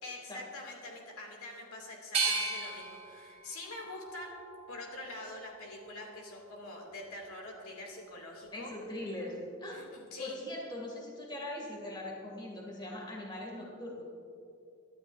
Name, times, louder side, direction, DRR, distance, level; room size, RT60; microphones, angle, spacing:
voice 1, 0.0-4.4 4.7-8.7 9.7-10.3, left 2 dB, 75° left, -1 dB, 2.6 m, -45 dB
sound 1, 2.1-5.1 5.6-6.4, right 4 dB, 30° right, 2.1 m, -37 dB
voice 2, 8.5-9.8 10.2-14.0, left 1 dB, 20° left, -2 dB, 2.5 m, -41 dB
22.5 x 12.0 x 2.7 m, 2.5 s
head